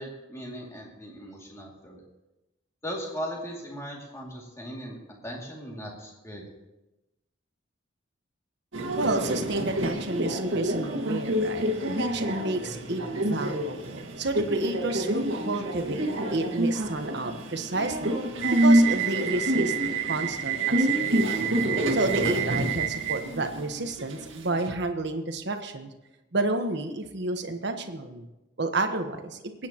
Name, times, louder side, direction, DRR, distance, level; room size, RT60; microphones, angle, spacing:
voice 1, 0.0-2.0 2.8-5.0 5.2-6.4, equal, 15° left, -2 dB, 2.5 m, -38 dB
Subway metro underground, 8.7-24.7, right 2 dB, 90° right, 1.9 m, -27 dB
voice 2, 9.0-18.1 18.6-19.7 20.1-21.5 21.9-25.9 26.3-28.3 28.6-29.4, right 2 dB, 60° right, 6 dB, 1.2 m, -30 dB
23.5 x 9.5 x 3.0 m, 1.0 s
head